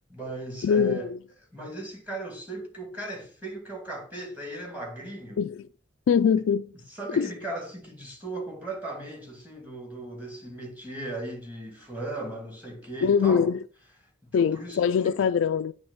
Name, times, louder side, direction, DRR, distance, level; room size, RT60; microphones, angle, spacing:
voice 1, 0.1-1.1 1.5-5.4 6.9-13.5 14.2-15.1, right 2 dB, 10° right, 2.4 m, -37 dB
voice 2, 0.6-1.2 5.4-5.6 6.1-6.7 7.2-7.3 13.0-13.6 14.3-15.7, left 7 dB, 85° left, 0.3 m, -23 dB
8.7 x 3.5 x 5.5 m
head